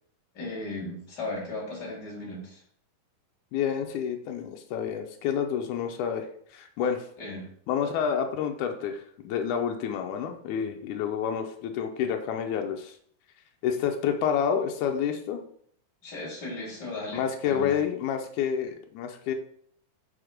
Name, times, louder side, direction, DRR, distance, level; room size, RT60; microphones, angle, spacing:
voice 1, 0.3-2.6 7.2-7.5 16.0-17.7, left 2 dB, 30° left, -3 dB, 2.7 m, -36 dB
voice 2, 3.5-7.1 7.7-12.9 13.6-15.4 17.1-19.3, left 8 dB, 90° left, 4 dB, 1.7 m, -29 dB
6.2 x 4.6 x 5.0 m, 0.63 s
omnidirectional pair, 4.3 m